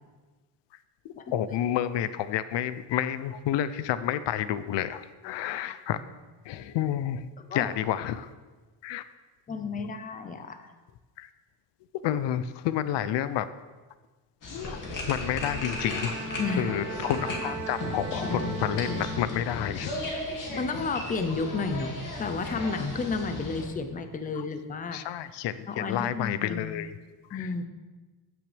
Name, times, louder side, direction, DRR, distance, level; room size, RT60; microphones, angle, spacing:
voice 1, 1.3-6.0 6.4-7.2 7.5-8.3 8.8-9.0 9.8-9.9 11.2-11.3 12.0-13.5 14.5-16.2 16.6-20.0 24.3-24.4 24.9-26.9 27.3-27.5, left 11 dB, 85° left, 13 dB, 0.6 m, -30 dB
voice 2, 9.5-10.7 16.4-16.8 20.6-25.0 25.7-26.7 27.3-27.6, left 4 dB, 20° left, 8 dB, 0.5 m, -32 dB
sound 1, 14.4-23.6, left 2 dB, 50° left, 2.3 m, -35 dB
Bowed string instrument, 15.2-19.9, right 4 dB, 30° right, 1.5 m, -39 dB
15.0 x 6.2 x 3.4 m, 1.3 s
cardioid pair, 165°, 41 cm